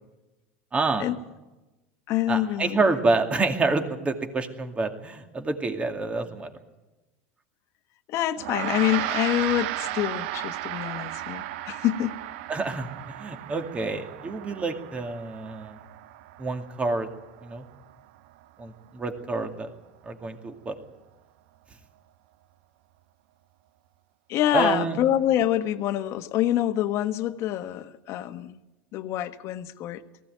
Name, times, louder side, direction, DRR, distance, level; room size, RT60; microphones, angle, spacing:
voice 1, 0.7-1.0 2.3-6.5 12.5-15.8 16.4-17.1 17.4-17.6 18.6-19.7 20.0-20.7 24.5-25.0, right 3 dB, 20° right, 6 dB, 2.4 m, -28 dB
voice 2, 2.1-2.8 8.1-12.1 24.3-28.6 28.9-30.0, left 12 dB, 50° left, 10 dB, 1.4 m, -26 dB
Gong, 8.4-17.9, right 14 dB, 70° right, 0.7 m, -35 dB
19.5 x 15.5 x 9.2 m, 1.1 s
supercardioid pair, 120°, 6 cm